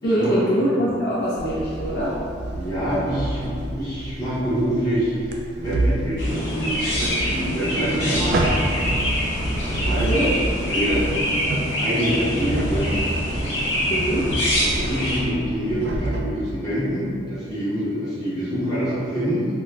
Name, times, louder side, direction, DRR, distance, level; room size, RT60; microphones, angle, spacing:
voice 1, 0.0-2.2 9.9-10.3 13.9-14.3, equal, 60° left, -8 dB, 0.5 m, -23 dB
sound 1, 1.4-16.2, right 1 dB, 60° right, 0.3 m, -28 dB
voice 2, 2.5-8.7 9.7-10.3 10.7-11.1 11.8-12.9 14.6-19.5, equal, 20° left, -11 dB, 0.9 m, -26 dB
Chirp tweet, 6.2-15.2, equal, 85° left, 0.9 m, -25 dB
3.8 x 2.1 x 2.3 m, 2.3 s
head